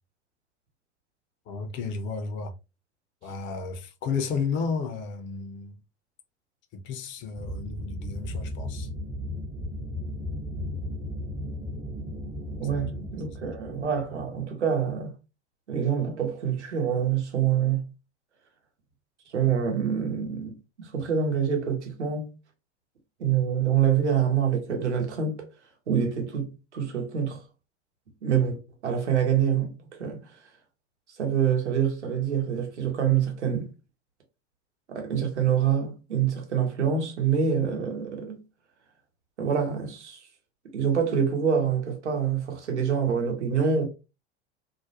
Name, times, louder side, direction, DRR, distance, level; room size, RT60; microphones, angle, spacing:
voice 1, 1.5-2.5 3.2-5.8 6.7-8.9 12.7-13.4, left 5 dB, 35° left, 0.5 m, -33 dB
sound 1, 7.4-14.4, left 1 dB, 20° right, 0.6 m, -35 dB
voice 2, 12.6-15.1 15.7-17.8 19.3-20.5 20.8-22.3 23.2-25.4 25.9-27.4 28.2-30.3 31.2-33.7 34.9-38.4 39.4-40.2 40.7-43.9, right 8 dB, 85° right, 0.9 m, -26 dB
2.4 x 2.0 x 2.6 m
figure-of-eight pair, 80°, 34 cm